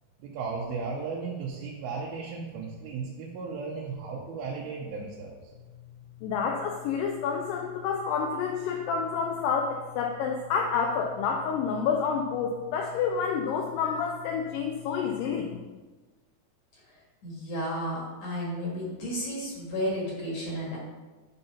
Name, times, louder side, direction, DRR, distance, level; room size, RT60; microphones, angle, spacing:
voice 1, 0.2-5.4, right 4 dB, 90° right, -4 dB, 2.8 m, -35 dB
voice 2, 6.2-15.6, left 6 dB, 80° left, 1 dB, 2.2 m, -29 dB
voice 3, 17.2-20.8, equal, 55° left, -3 dB, 2.4 m, -32 dB
9.8 x 4.0 x 5.6 m, 1.3 s
omnidirectional pair, 4.2 m